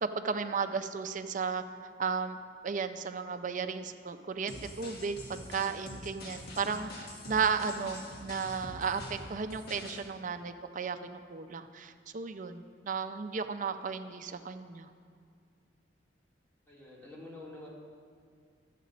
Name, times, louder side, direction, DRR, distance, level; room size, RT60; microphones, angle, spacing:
voice 1, 0.0-1.6 2.0-2.4 2.6-11.0 11.3-14.9, right 5 dB, 45° right, 9 dB, 0.5 m, -34 dB
sound 1, 4.5-10.0, left 1 dB, 60° left, 1.5 m, -45 dB
voice 2, 16.7-17.7, left 2 dB, 10° left, -6 dB, 2.0 m, -47 dB
12.0 x 7.5 x 4.1 m, 2.2 s
head